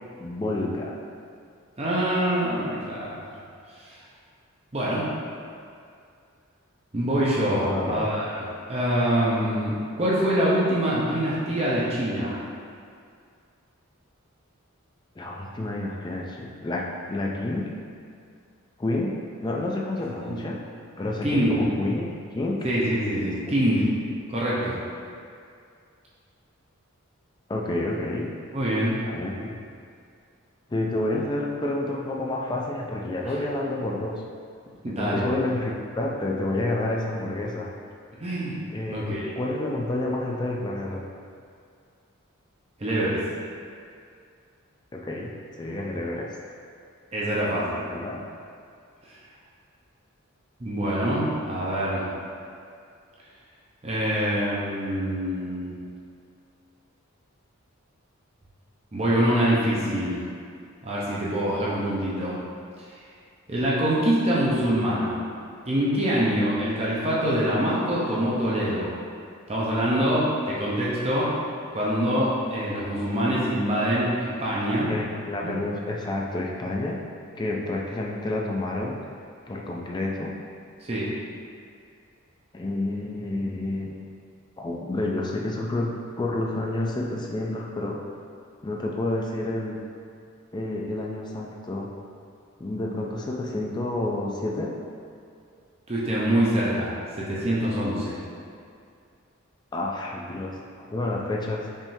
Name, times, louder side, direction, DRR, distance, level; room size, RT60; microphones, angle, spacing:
voice 1, 0.2-1.0 7.7-8.2 15.2-17.7 18.8-19.1 19.4-20.6 21.0-22.7 27.5-28.3 29.0-29.6 30.7-34.2 34.9-37.7 38.7-41.1 44.9-46.4 47.9-48.2 74.9-77.0 77.4-79.0 79.5-80.3 82.5-84.0 84.6-85.9 86.2-88.0 88.6-89.8 90.5-91.9 92.6-94.8 99.7-101.8, left 2 dB, 20° left, -1 dB, 0.3 m, -29 dB
voice 2, 1.8-3.4 3.7-4.0 4.7-5.1 6.9-12.4 20.2-20.4 21.2-21.6 22.6-23.8 24.3-24.8 28.5-29.0 33.2-33.3 34.8-35.3 38.2-38.6 38.9-39.3 42.8-43.2 47.1-47.8 50.6-52.1 53.8-55.8 58.9-60.2 60.8-62.4 63.5-65.2 65.7-68.9 69.5-71.3 71.7-74.9 75.4-75.5 80.9-81.1 95.9-98.2, equal, 30° right, -7 dB, 0.6 m, -25 dB
5.3 x 3.6 x 2.7 m, 2.3 s
head